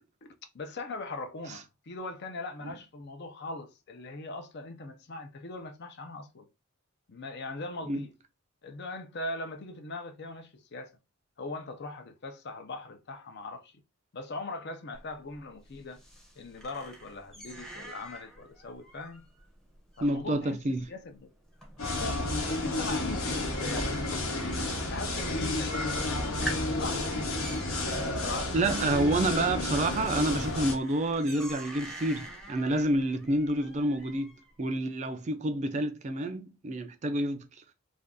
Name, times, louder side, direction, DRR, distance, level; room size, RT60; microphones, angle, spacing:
voice 1, 0.5-6.5 7.1-8.1 8.6-10.9 11.4-13.8 14.1-16.0 16.4-19.2 20.0-21.3 21.8-24.2 24.8-27.2 28.0-29.2, left 2 dB, 55° left, 0.6 m, -40 dB
sound 1, 14.9-24.5 24.8-25.4 25.8-25.9 26.2-34.5, right 1 dB, 5° left, 0.7 m, -46 dB
voice 2, 20.0-20.9 28.5-37.5, right 1 dB, 35° right, 0.4 m, -28 dB
sound 2, 21.8-30.7, left 2 dB, 75° left, 0.9 m, -31 dB
2.6 x 2.4 x 3.5 m
head